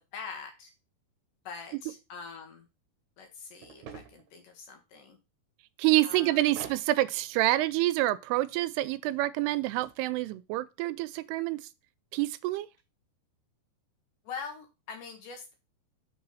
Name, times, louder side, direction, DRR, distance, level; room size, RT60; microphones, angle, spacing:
voice 1, 0.1-0.7 1.5-2.7 3.2-5.2 6.0-6.4 14.3-15.5, left 5 dB, 70° left, 2.3 m, -43 dB
sound 1, 3.6-4.3 6.5-6.9 9.5-10.0, right 7 dB, 65° right, 2.2 m, -45 dB
voice 2, 5.8-11.6 12.1-12.7, right 17 dB, 85° right, 2.6 m, -27 dB
6.2 x 4.0 x 5.5 m
omnidirectional pair, 4.6 m